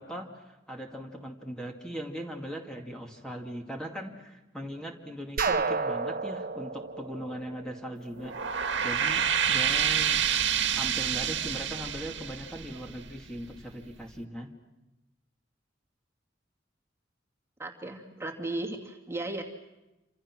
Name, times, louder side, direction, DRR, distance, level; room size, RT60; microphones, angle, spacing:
voice 1, 0.0-10.2 10.8-14.5, equal, 5° left, 1 dB, 2.4 m, -39 dB
sound 1, 5.4-8.2, right 4 dB, 50° right, 1.1 m, -31 dB
sound 2, 8.1-13.4, right 8 dB, 70° right, 1.9 m, -28 dB
voice 2, 17.6-19.4, right 2 dB, 15° right, 1 dB, 2.5 m, -35 dB
28.5 x 27.0 x 6.2 m, 1.0 s
head